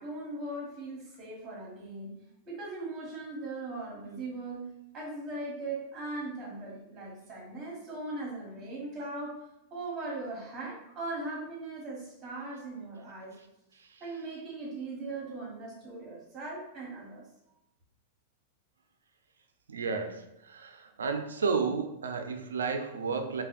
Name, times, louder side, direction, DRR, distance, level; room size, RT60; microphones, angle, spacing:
voice 1, 0.0-2.1 2.5-9.4 9.7-13.4 14.0-17.2, right 2 dB, 25° right, -3 dB, 1.1 m, -39 dB
voice 2, 19.7-23.4, right 5 dB, 85° right, 6 dB, 0.3 m, -32 dB
3.3 x 2.1 x 2.5 m, 0.85 s
hypercardioid pair, 110°, 0 cm